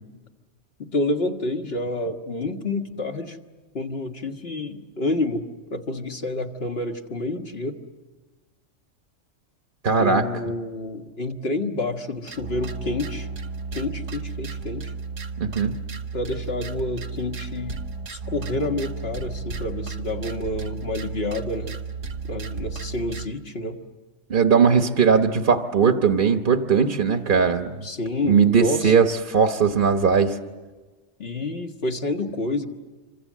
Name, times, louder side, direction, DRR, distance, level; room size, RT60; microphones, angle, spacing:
voice 1, 0.8-3.4 3.7-5.4 5.7-7.8 10.0-13.3 13.7-14.8 16.1-17.8 18.1-21.8 22.2-23.8 27.8-28.9 31.2-32.6, left 2 dB, 55° left, 4 dB, 1.8 m, -28 dB
voice 2, 9.8-10.2 15.4-15.7 24.3-27.7 28.2-30.4, right 6 dB, 45° right, 6 dB, 1.2 m, -19 dB
sound 1, 12.3-23.3, right 4 dB, 75° right, 1.6 m, -33 dB
26.5 x 25.0 x 7.4 m, 1.3 s
omnidirectional pair, 1.3 m